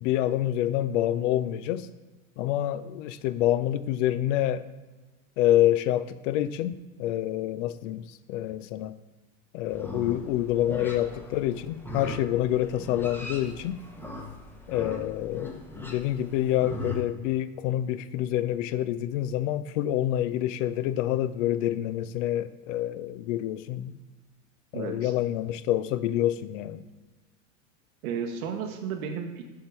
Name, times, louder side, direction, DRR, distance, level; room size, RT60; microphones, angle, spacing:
voice 1, 0.0-1.9 2.4-4.6 5.4-6.7 7.0-8.9 9.5-13.8 14.7-24.0 24.7-26.8, left 12 dB, 60° left, 15 dB, 0.5 m, -27 dB
Livestock farm animals working animals, 9.7-17.0, left 1 dB, 5° left, 0.8 m, -39 dB
voice 2, 24.7-25.1 28.0-29.4, right 6 dB, 75° right, 4 dB, 0.8 m, -33 dB
7.0 x 3.8 x 4.7 m, 1.2 s
hypercardioid pair, 100°, 43 cm